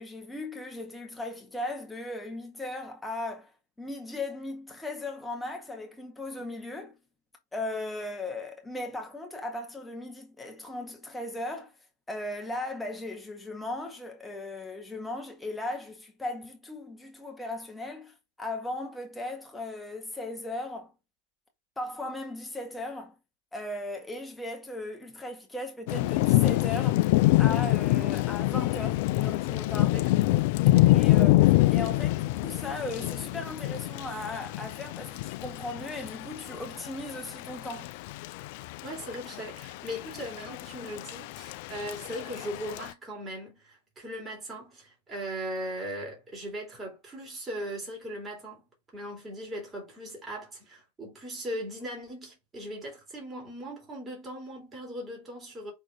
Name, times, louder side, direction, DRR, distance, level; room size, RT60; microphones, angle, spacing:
voice 1, 0.0-3.5 3.8-7.0 7.5-11.7 12.1-20.9 21.8-23.2 23.5-27.0 27.4-30.0 30.9-31.4 31.7-38.0, left 2 dB, 5° left, 1.8 m, -37 dB
Thunder / Rain, 25.9-42.9, left 17 dB, 50° left, 0.4 m, -26 dB
voice 2, 30.7-31.2 38.8-55.7, equal, 20° right, 3.6 m, -39 dB
6.1 x 3.9 x 4.0 m
figure-of-eight pair, 90°, 0 cm